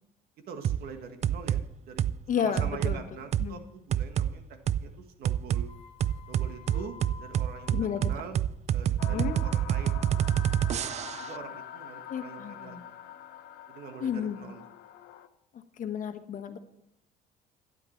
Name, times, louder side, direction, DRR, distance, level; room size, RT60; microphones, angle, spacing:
voice 1, 0.5-2.1 2.4-4.4 4.8-5.7 6.3-8.4 8.7-10.3 10.7-12.8 13.7-14.6, right 6 dB, 65° right, 6 dB, 1.6 m, -44 dB
sound 1, 0.6-0.8 1.2-1.6 2.0-2.2 2.6-3.0 3.3-3.5 3.9-4.3 4.7-4.8 5.2-5.6 6.0-11.3, right 10 dB, 40° right, 0.4 m, -27 dB
voice 2, 2.3-3.6 6.7-6.9 7.7-8.1 9.0-9.3 12.1-12.8 14.0-14.4 15.8-16.6, left 8 dB, 50° left, 8 dB, 1.2 m, -32 dB
sound 2, 5.7-8.3, left 5 dB, 35° left, 2.0 m, -50 dB
sound 3, 9.0-15.3, left 10 dB, 80° left, 0.9 m, -44 dB
12.0 x 9.9 x 4.4 m, 0.78 s
cardioid pair, 110°, 17 cm